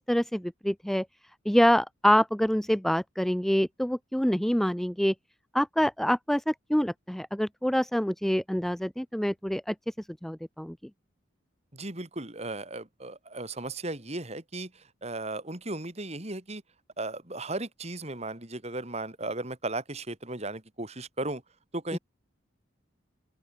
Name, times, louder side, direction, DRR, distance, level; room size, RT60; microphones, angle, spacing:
voice 1, 0.1-1.0 1.5-5.1 5.5-9.7 10.2-10.7, equal, ahead, 0.3 m, -26 dB
voice 2, 11.7-16.6 17.0-21.4 21.7-22.0, right 2 dB, 35° right, 2.8 m, -36 dB
open air
head